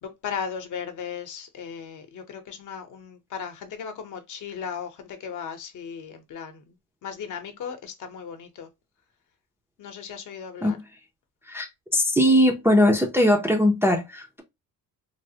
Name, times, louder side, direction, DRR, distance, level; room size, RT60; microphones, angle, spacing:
voice 1, 0.0-6.8 7.0-8.7 9.8-10.8, left 7 dB, 60° left, 0.8 m, -36 dB
voice 2, 11.9-14.4, equal, 5° right, 0.4 m, -20 dB
3.2 x 2.0 x 2.7 m
cardioid pair, 140°, 35 cm